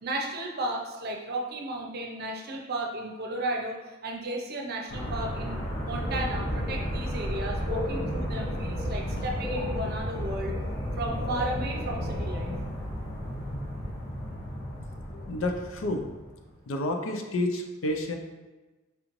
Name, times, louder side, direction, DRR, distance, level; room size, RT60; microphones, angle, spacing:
voice 1, 0.0-10.6 11.0-12.5, right 2 dB, 50° right, 1 dB, 0.6 m, -34 dB
sound 1, 4.9-16.5, equal, 55° left, 1.0 m, -34 dB
sound 2, 6.0-12.6, left 1 dB, 20° left, 0.5 m, -35 dB
voice 2, 15.3-16.1 16.7-18.2, left 1 dB, 85° left, 3 dB, 0.5 m, -29 dB
4.7 x 3.1 x 2.5 m, 1.2 s
head